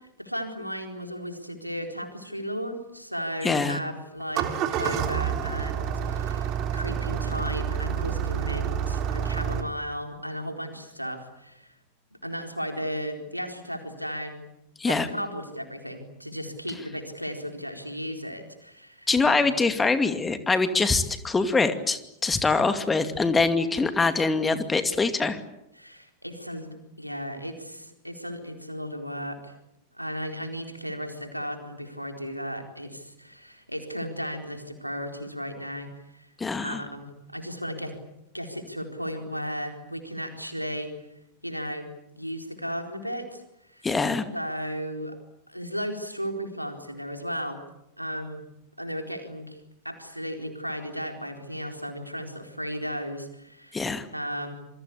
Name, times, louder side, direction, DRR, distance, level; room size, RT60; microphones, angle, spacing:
voice 1, 0.2-11.7 12.2-14.4 14.9-19.5 25.7-29.5 29.9-36.3 36.5-37.9 38.3-40.9 41.4-43.4 43.7-43.9 44.3-45.1 45.5-47.6 48.0-48.4 48.8-49.6 49.8-54.6, equal, 90° right, 4 dB, 4.2 m, -35 dB
voice 2, 3.4-3.8 14.8-15.1 19.1-25.4 36.4-36.8 43.8-44.3 53.7-54.1, left 4 dB, 15° left, 10 dB, 2.4 m, -24 dB
Engine starting, 4.2-9.6, right 8 dB, 35° right, 3.7 m, -28 dB
28.0 x 24.5 x 8.5 m, 0.81 s
figure-of-eight pair, 90°, 0 cm